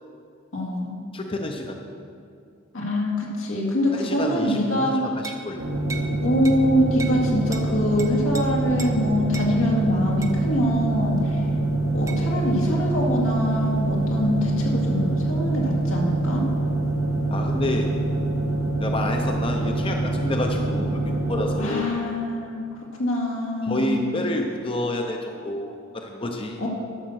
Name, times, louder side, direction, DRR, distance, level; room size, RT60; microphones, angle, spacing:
voice 1, 0.5-1.0 2.7-5.0 6.2-11.4 11.9-16.5 20.6-20.8 21.6-22.6 23.0-24.0 26.6-26.7, left 1 dB, 85° left, -2 dB, 2.2 m, -24 dB
voice 2, 1.1-1.8 3.9-5.6 5.9-6.1 17.3-17.9 18.8-21.9 23.6-26.6, left 1 dB, 25° left, 2 dB, 0.6 m, -29 dB
sound 1, 5.2-5.5 5.9-6.1 6.5-6.6 7.0-7.2 7.5-7.7 8.0-8.4 8.8-9.0 9.3-9.5 10.2-10.4 12.1-12.2, right 4 dB, 15° right, 0.7 m, -36 dB
sound 2, 5.6-21.6, right 2 dB, 85° right, 1.6 m, -25 dB
11.5 x 6.4 x 6.4 m, 2.5 s
head